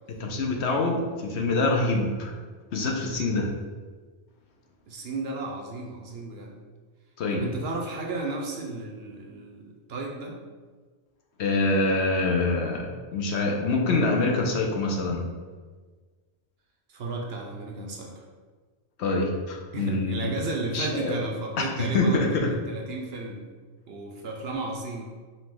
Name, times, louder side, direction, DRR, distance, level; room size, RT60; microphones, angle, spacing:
voice 1, 0.2-2.3 2.7-3.5 7.2-7.5 11.4-15.3 19.0-20.3 20.7-21.1 21.9-22.5, left 2 dB, 65° left, 1 dB, 0.9 m, -25 dB
voice 2, 4.9-6.6 7.3-10.4 16.9-18.2 19.7-23.5 23.9-25.0, right 2 dB, 60° right, 1 dB, 0.8 m, -34 dB
5.3 x 2.7 x 3.7 m, 1.4 s
omnidirectional pair, 1.3 m